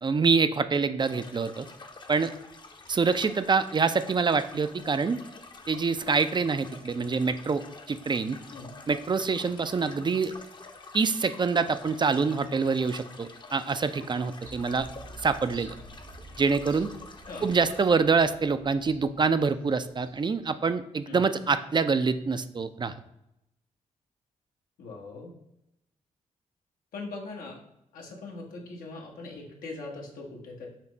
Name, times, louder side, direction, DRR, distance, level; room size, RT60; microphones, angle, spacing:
voice 1, 0.0-1.7 2.1-2.3 2.9-5.2 5.7-8.4 8.9-10.3 10.9-14.9 15.2-15.7 16.4-16.9 17.4-22.9, right 4 dB, 30° right, 11 dB, 0.4 m, -26 dB
sound 1, 1.0-17.8, left 3 dB, 35° left, 0.6 m, -48 dB
sound 2, 14.4-20.3 20.6-20.7, right 2 dB, 70° right, 0.9 m, -49 dB
voice 2, 24.8-25.3 26.9-27.6 27.9-30.7, left 3 dB, 85° left, 0 dB, 1.0 m, -41 dB
5.8 x 2.0 x 4.4 m, 0.83 s
supercardioid pair, 50°, 14 cm